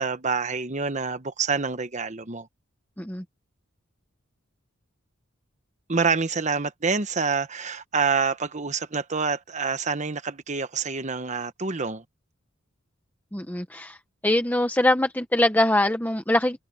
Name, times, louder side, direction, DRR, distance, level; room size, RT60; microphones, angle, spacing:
voice 1, 0.0-2.5 5.9-12.0, right 5 dB, 35° right, 1.1 m, -27 dB
voice 2, 13.3-14.0 14.2-16.6, left 1 dB, 10° left, 1.3 m, -23 dB
head